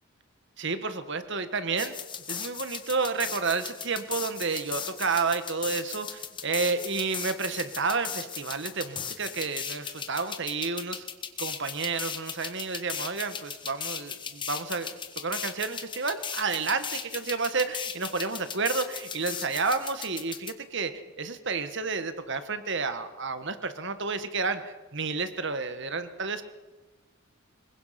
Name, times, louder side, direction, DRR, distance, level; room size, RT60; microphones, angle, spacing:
voice 1, 0.6-1.9 2.3-11.0 11.4-20.9 21.2-26.4, right 4 dB, 55° right, 10 dB, 1.6 m, -30 dB
sound 1, 1.8-20.5, left 7 dB, 20° left, 1.4 m, -37 dB
25.5 x 22.0 x 6.0 m, 1.2 s
head